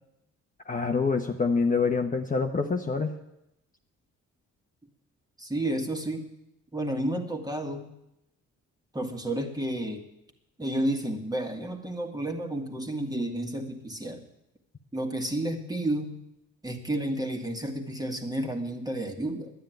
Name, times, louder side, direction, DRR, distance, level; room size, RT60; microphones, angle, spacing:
voice 1, 0.7-3.1, left 4 dB, 25° left, 3 dB, 1.0 m, -26 dB
voice 2, 5.4-6.3 6.7-7.9 8.9-10.1 10.6-14.2 14.9-16.1 16.6-19.5, right 1 dB, 15° right, 4 dB, 2.0 m, -31 dB
11.0 x 9.6 x 9.2 m, 0.85 s
cardioid pair, 90°, 30 cm